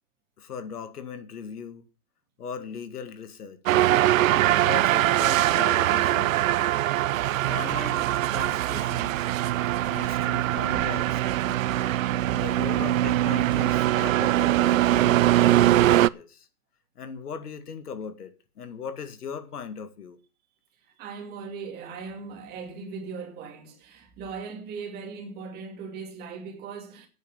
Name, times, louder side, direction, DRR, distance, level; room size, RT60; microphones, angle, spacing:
voice 1, 0.4-1.8 2.4-3.8 4.2-6.6 7.4-9.3 9.9-11.0 11.5-11.8 12.3-16.5 17.0-20.2, left 6 dB, 90° left, 2.0 m, -39 dB
sound 1, 3.7-16.1, right 14 dB, 65° right, 0.5 m, -22 dB
voice 2, 12.1-12.4 20.8-27.1, right 5 dB, 20° right, 2.5 m, -39 dB
9.1 x 7.7 x 9.0 m
hypercardioid pair, 155°, 44 cm